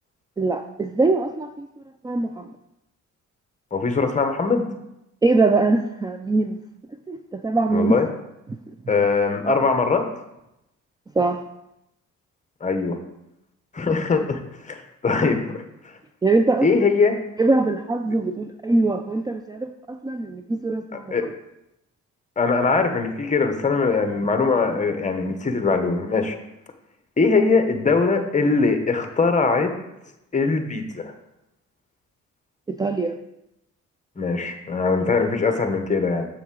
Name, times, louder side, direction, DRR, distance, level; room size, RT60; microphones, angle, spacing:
voice 1, 0.4-1.7 2.0-2.5 5.2-6.6 7.1-7.9 11.2-11.4 16.2-16.7 17.4-21.1 32.8-33.2, right 3 dB, 15° right, 7 dB, 0.4 m, -22 dB
voice 2, 3.7-4.6 7.7-8.1 8.9-10.1 12.6-13.0 13.7-14.4 14.7-16.0 16.6-17.2 21.1-21.2 22.4-26.4 27.2-29.7 30.3-31.1 34.2-36.3, left 4 dB, 25° left, 6 dB, 1.1 m, -21 dB
7.0 x 6.8 x 3.8 m, 0.87 s
cardioid pair, 90°, 30 cm